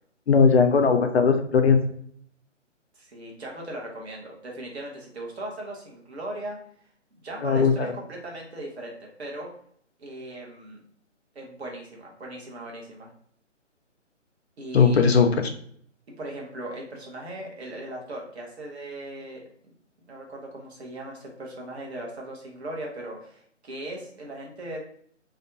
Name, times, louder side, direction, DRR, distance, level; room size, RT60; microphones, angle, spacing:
voice 1, 0.3-1.8 7.4-7.9 14.7-15.4, left 5 dB, 60° left, 6 dB, 0.4 m, -18 dB
voice 2, 3.0-6.6 7.2-9.5 10.0-10.8 11.3-13.1 14.6-15.0 16.2-19.7 20.1-24.8, right 1 dB, 60° right, -1 dB, 1.0 m, -38 dB
2.6 x 2.3 x 2.6 m, 0.63 s
figure-of-eight pair, 150°, 37 cm